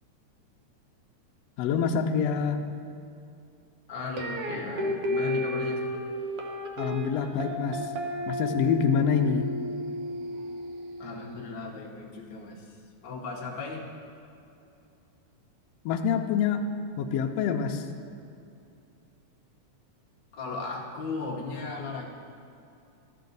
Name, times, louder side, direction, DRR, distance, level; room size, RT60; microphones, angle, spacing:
voice 1, 1.6-2.6 6.8-7.9 8.3-9.5 15.8-16.6 17.0-17.9, left 7 dB, 85° left, 5 dB, 1.5 m, -26 dB
voice 2, 3.9-5.8 11.0-12.8 13.0-13.9 20.3-22.1, left 3 dB, 65° left, -2 dB, 1.1 m, -36 dB
sound 1, 4.2-11.3, equal, 65° right, 1.5 m, -33 dB
12.0 x 7.6 x 3.9 m, 2.6 s
omnidirectional pair, 3.5 m